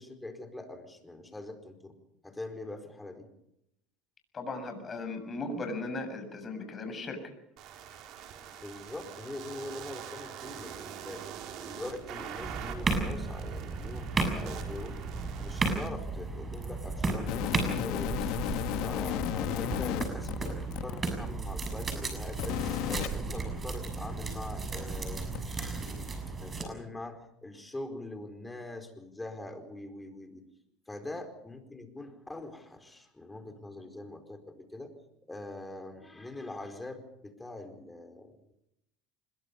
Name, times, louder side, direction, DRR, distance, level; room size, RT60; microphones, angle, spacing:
voice 1, 0.0-2.0 2.2-3.3 8.6-11.2 11.6-15.0 15.4-18.3 18.8-25.9 26.4-30.4 30.9-34.9 35.3-38.3, left 2 dB, 10° left, 7 dB, 4.6 m, -43 dB
voice 2, 4.3-7.2, left 2 dB, 30° left, 7 dB, 7.1 m, -37 dB
sound 1, 7.6-15.9, right 9 dB, 60° right, 4.3 m, -44 dB
sound 2, 12.4-26.7, right 3 dB, 25° right, 6.7 m, -34 dB
sound 3, 17.3-21.0 22.3-23.1 25.3-25.4, left 14 dB, 70° left, 1.5 m, -33 dB
26.0 x 22.0 x 5.4 m, 0.79 s
supercardioid pair, 100°, 0 cm